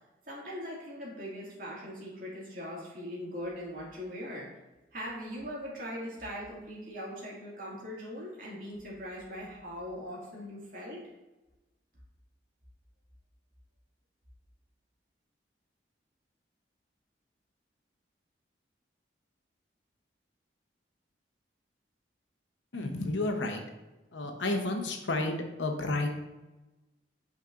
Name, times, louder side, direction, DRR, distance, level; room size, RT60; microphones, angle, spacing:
voice 1, 0.2-4.5 4.9-11.0, equal, 50° right, -5 dB, 2.2 m, -40 dB
voice 2, 22.7-23.6 24.1-26.1, left 2 dB, 90° left, 4 dB, 0.9 m, -31 dB
8.5 x 5.0 x 2.5 m, 1.1 s
head